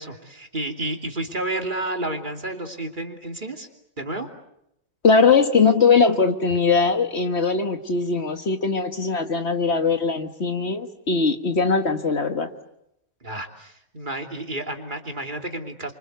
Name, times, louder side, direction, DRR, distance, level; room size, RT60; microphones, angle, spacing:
voice 1, 0.0-3.7 4.0-4.3 13.2-15.9, right 1 dB, 35° right, 4 dB, 3.1 m, -31 dB
voice 2, 5.0-12.5, left 4 dB, 50° left, 7 dB, 1.8 m, -20 dB
29.5 x 25.5 x 8.0 m, 0.80 s
omnidirectional pair, 1.4 m